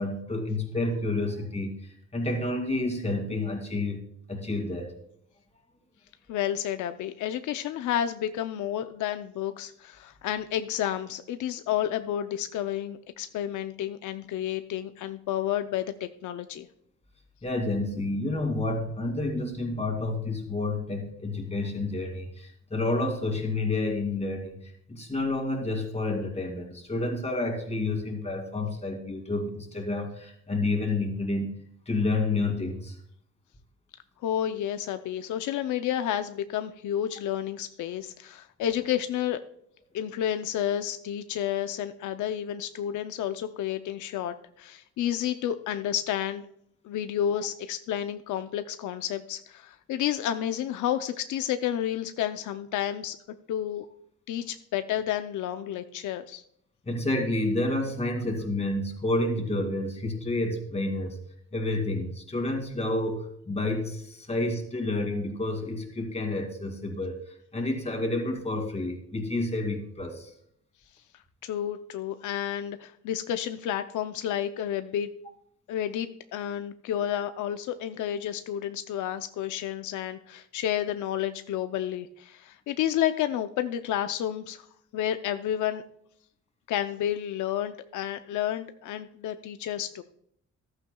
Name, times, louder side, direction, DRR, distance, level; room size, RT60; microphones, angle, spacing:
voice 1, 0.0-4.0 4.3-4.9 17.4-31.5 31.9-33.0 56.9-61.2 61.5-70.3, left 2 dB, 20° left, 2 dB, 2.4 m, -29 dB
voice 2, 6.3-16.7 34.2-39.4 39.9-46.4 46.8-53.2 53.5-53.9 54.3-56.4 71.4-75.1 75.7-84.7 84.9-85.8 86.7-90.0, left 10 dB, 85° left, 9 dB, 0.6 m, -30 dB
14.0 x 11.5 x 2.3 m, 0.69 s
cardioid pair, 105°, 30 cm